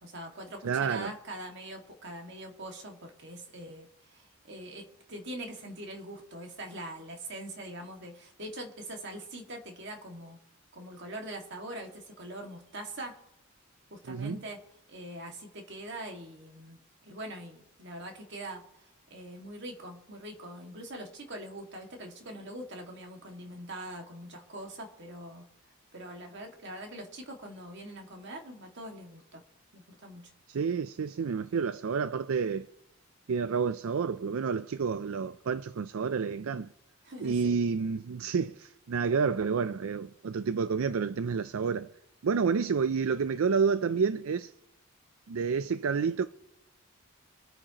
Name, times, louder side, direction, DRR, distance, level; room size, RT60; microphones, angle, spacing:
voice 1, 0.0-10.4 10.7-13.2 13.9-14.6 14.9-18.6 19.1-25.4 25.9-29.4 29.7-30.3 37.0-37.6, right 1 dB, 55° right, 2.0 m, -43 dB
voice 2, 0.6-1.1 14.1-14.4 30.5-32.7 33.3-36.7 37.2-41.9 42.2-44.5 45.3-46.3, right 5 dB, 75° right, 0.4 m, -29 dB
25.5 x 8.7 x 2.9 m
head